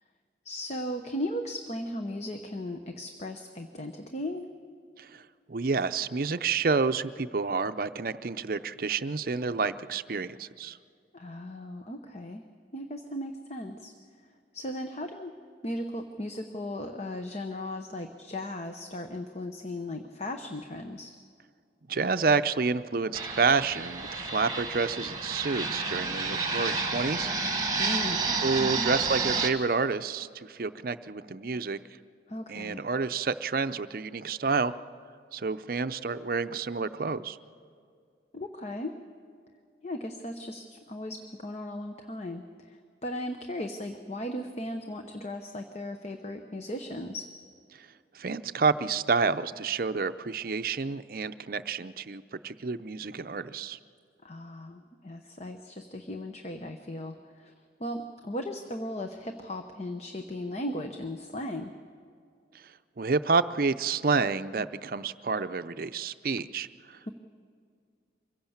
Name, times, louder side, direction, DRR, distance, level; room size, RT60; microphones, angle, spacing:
voice 1, 0.4-4.5 11.1-12.4 12.7-13.9 14.5-15.3 15.6-21.2 27.8-28.2 28.6-28.9 32.3-32.8 38.3-38.9 39.8-47.3 54.2-57.5 57.8-61.7, left 1 dB, 35° left, 5 dB, 0.9 m, -37 dB
voice 2, 5.5-10.8 21.9-27.3 28.4-31.8 32.5-34.7 35.3-37.4 48.1-53.8 62.5-62.6 63.0-67.0, right 4 dB, 50° right, 11 dB, 0.6 m, -29 dB
Fixed-wing aircraft airplane, 23.1-29.5, right 4 dB, 20° right, 1.4 m, -30 dB
24.5 x 16.0 x 7.2 m, 2.2 s
head